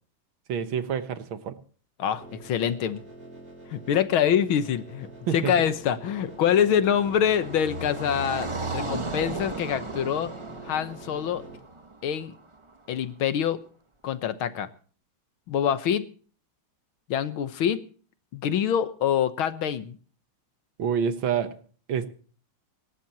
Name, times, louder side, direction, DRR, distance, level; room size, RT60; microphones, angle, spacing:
voice 1, 0.5-1.6 5.3-5.6 20.8-21.6 21.9-22.1, right 7 dB, 75° right, 2.0 m, -27 dB
voice 2, 2.0-3.0 3.7-10.3 10.7-11.4 12.0-12.3 12.9-13.6 14.0-14.7 15.5-16.0 17.1-17.8 18.3-20.0, left 9 dB, 85° left, 1.9 m, -25 dB
sound 1, 2.2-11.6, right 2 dB, 55° right, 4.9 m, -46 dB
Car passing by, 5.5-12.7, right 3 dB, 25° right, 0.7 m, -36 dB
26.0 x 12.5 x 2.9 m
omnidirectional pair, 2.2 m